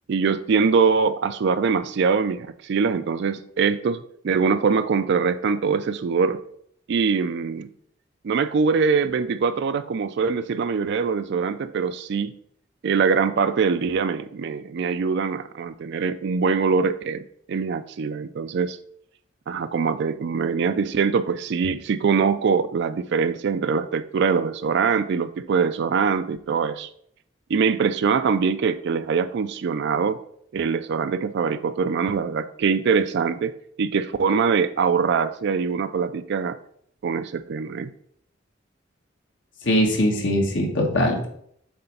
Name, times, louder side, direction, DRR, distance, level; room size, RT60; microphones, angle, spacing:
voice 1, 0.1-6.4 6.9-7.7 8.2-12.4 12.8-18.8 19.5-26.9 27.5-30.2 30.5-36.6 37.0-37.9, right 5 dB, 60° right, 11 dB, 0.4 m, -23 dB
voice 2, 39.6-41.3, equal, 70° left, 1 dB, 1.7 m, -21 dB
7.8 x 3.3 x 5.6 m, 0.67 s
head